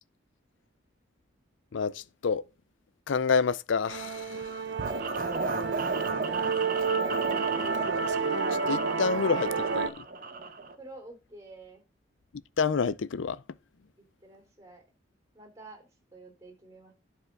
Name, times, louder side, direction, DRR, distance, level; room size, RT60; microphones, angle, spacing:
voice 1, 1.7-2.4 3.1-4.7 8.5-10.1 12.6-13.4, left 5 dB, 80° left, 0.5 m, -28 dB
Musical instrument, 3.9-9.9, right 5 dB, 65° right, 0.8 m, -30 dB
sound 1, 4.8-10.8, right 3 dB, 45° right, 1.1 m, -34 dB
voice 2, 10.8-11.8 14.2-14.8 15.3-16.9, right 2 dB, 15° right, 3.6 m, -49 dB
11.5 x 4.9 x 5.3 m
head